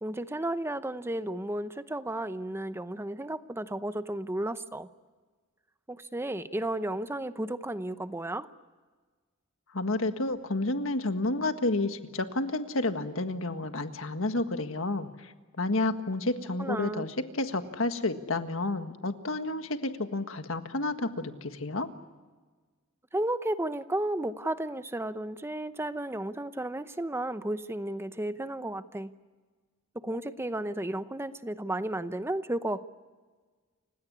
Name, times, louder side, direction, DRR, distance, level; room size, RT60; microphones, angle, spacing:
voice 1, 0.0-4.9 5.9-8.5 16.6-17.0 23.1-29.1 29.9-32.8, right 1 dB, 10° right, 11 dB, 0.8 m, -33 dB
voice 2, 9.7-21.9, left 2 dB, 70° left, 8 dB, 1.7 m, -30 dB
30.0 x 17.0 x 9.8 m, 1.4 s
head